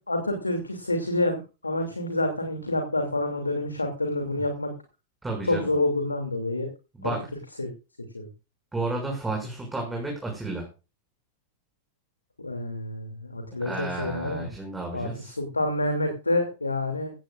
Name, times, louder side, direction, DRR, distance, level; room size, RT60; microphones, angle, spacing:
voice 1, 0.1-4.7 5.5-6.7 7.0-7.1 7.6-7.7 8.1-8.3 12.4-14.5 14.9-17.1, left 2 dB, 80° left, 4 dB, 2.8 m, -28 dB
voice 2, 5.2-5.7 6.9-7.3 8.7-10.7 13.6-15.3, right 2 dB, 10° right, 1 dB, 6.6 m, -32 dB
17.5 x 16.0 x 2.5 m, 0.31 s
figure-of-eight pair, 90°, 0 cm